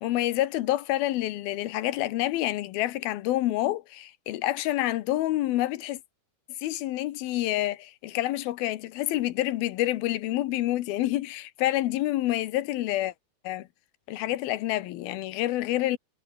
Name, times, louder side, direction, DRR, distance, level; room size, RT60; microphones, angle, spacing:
voice 1, 0.0-6.0 6.6-13.1 13.4-13.7 14.1-16.0, left 15 dB, 75° left, 2.6 m, -28 dB
omnidirectional pair, 4.8 m